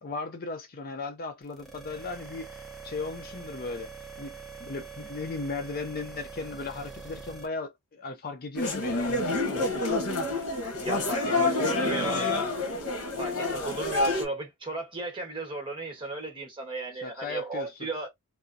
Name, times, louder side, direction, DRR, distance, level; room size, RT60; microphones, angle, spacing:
voice 1, 0.0-3.9 4.2-10.1 11.3-12.6 17.0-17.9, left 3 dB, 40° left, 0.5 m, -37 dB
sound 1, 1.5-7.5, right 5 dB, ahead, 0.7 m, -44 dB
sound 2, 8.6-14.2, left 2 dB, 90° left, 1.0 m, -28 dB
voice 2, 10.8-12.3 13.2-18.1, right 2 dB, 25° right, 1.4 m, -35 dB
3.5 x 2.5 x 2.6 m
head